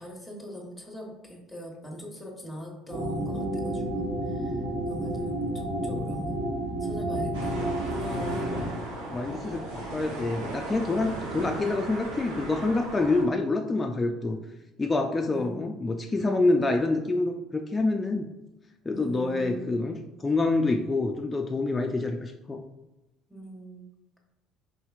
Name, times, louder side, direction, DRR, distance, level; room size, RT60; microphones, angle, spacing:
voice 1, 0.0-4.6 4.9-6.5 6.8-7.6 7.8-8.5 15.3-15.7 18.9-19.8 23.3-23.9, equal, 5° left, 0 dB, 1.1 m, -41 dB
sound 1, 2.9-8.7, right 1 dB, 50° right, 1.1 m, -30 dB
sound 2, 7.3-13.3, right 1 dB, 85° right, 0.8 m, -37 dB
voice 2, 8.5-14.4 14.8-18.3 18.9-22.6, left 2 dB, 20° left, 3 dB, 0.3 m, -27 dB
4.2 x 2.8 x 2.4 m, 0.98 s
hypercardioid pair, 65°, 0 cm